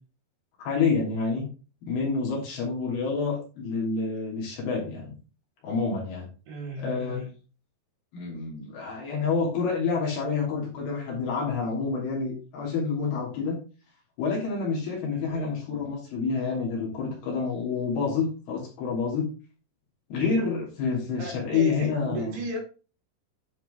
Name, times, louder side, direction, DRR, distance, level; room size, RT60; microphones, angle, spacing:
voice 1, 0.6-1.5 1.8-5.1 5.6-6.3 6.8-7.2 8.1-13.6 14.2-19.3 20.1-22.3, left 5 dB, 60° left, -3 dB, 4.6 m, -28 dB
voice 2, 6.5-7.3 15.1-15.5 21.2-22.6, right 2 dB, 80° right, -1 dB, 4.6 m, -35 dB
10.5 x 4.6 x 3.7 m, 0.35 s
omnidirectional pair, 5.1 m